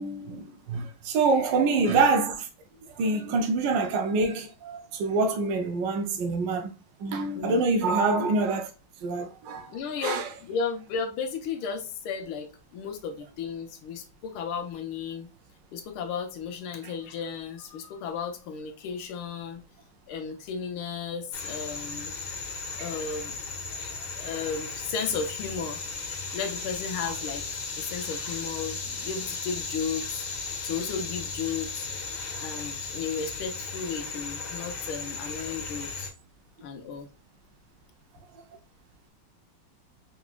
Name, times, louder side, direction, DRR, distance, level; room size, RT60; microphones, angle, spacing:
voice 1, 0.0-2.5 3.0-6.7 7.0-8.7 9.0-9.7 10.0-10.3 16.8-16.9 22.8-22.9 27.0-27.1, right 3 dB, 70° right, 1.2 m, -26 dB
voice 2, 9.7-15.3 15.7-19.6 20.1-22.2 22.8-23.3 24.1-25.8 26.3-27.5 27.8-30.3 30.6-31.9 32.4-36.1 36.6-37.1, left 6 dB, 80° left, 1.7 m, -34 dB
sound 1, 21.3-36.1, left 4 dB, 55° left, 1.6 m, -36 dB
4.8 x 4.0 x 2.2 m
omnidirectional pair, 2.3 m